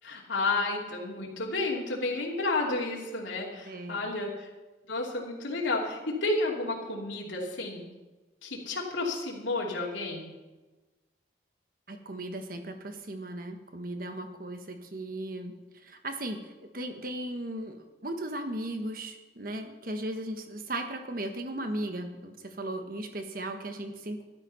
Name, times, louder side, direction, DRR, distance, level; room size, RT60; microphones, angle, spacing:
voice 1, 0.0-4.5 4.9-7.8 8.4-10.3, left 2 dB, 85° left, -3 dB, 2.8 m, -31 dB
voice 2, 3.6-4.1 11.9-15.5 15.8-24.2, right 1 dB, 45° right, 6 dB, 1.4 m, -37 dB
13.0 x 11.5 x 5.6 m, 1.2 s
head